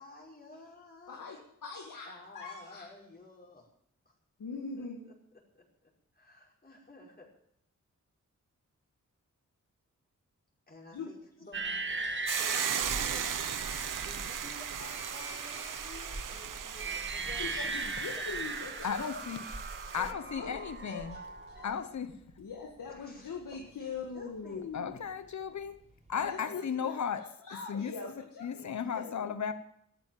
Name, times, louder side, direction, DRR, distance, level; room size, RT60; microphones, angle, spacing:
voice 1, 0.0-1.4 2.1-3.7 4.1-4.2 4.8-7.3 10.7-11.6 12.2-13.5 14.0-18.4 20.0-20.6 21.7-21.8 22.9-23.9 24.1-24.7 25.4-25.5 26.1-26.7, left 2 dB, 30° left, -3 dB, 5.6 m, -53 dB
voice 2, 1.1-2.9 4.4-5.1 10.9-11.1 17.4-19.2 20.4-20.5 20.9-21.2 21.6-21.7 22.4-25.0 26.2-29.4, left 5 dB, 90° left, 0 dB, 2.1 m, -42 dB
sound 1, 11.5-21.8, right 3 dB, 35° right, 1.7 m, -39 dB
Child speech kid speaking, 11.9-26.3, right 1 dB, 20° right, 3.5 m, -50 dB
Hiss / Boiling, 12.3-20.1, right 8 dB, 80° right, 0.9 m, -37 dB
voice 3, 18.8-19.4 19.9-21.2 21.6-22.1 24.7-25.7 26.1-27.2 27.7-27.9 28.4-29.5, left 7 dB, 60° left, 10 dB, 1.1 m, -35 dB
13.5 x 9.3 x 9.2 m, 0.72 s
wide cardioid pair, 80°, 31 cm